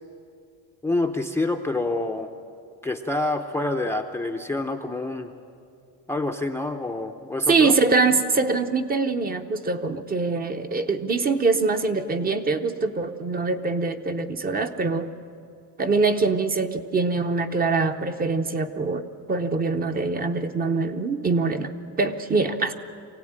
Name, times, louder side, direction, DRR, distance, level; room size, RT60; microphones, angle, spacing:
voice 1, 0.8-2.3 2.8-5.3 6.1-7.7, left 2 dB, 5° left, 5 dB, 0.6 m, -27 dB
voice 2, 7.5-15.1 15.8-22.7, right 3 dB, 25° right, 8 dB, 0.8 m, -24 dB
24.0 x 17.0 x 8.9 m, 2.4 s
cardioid pair, 155°, 38 cm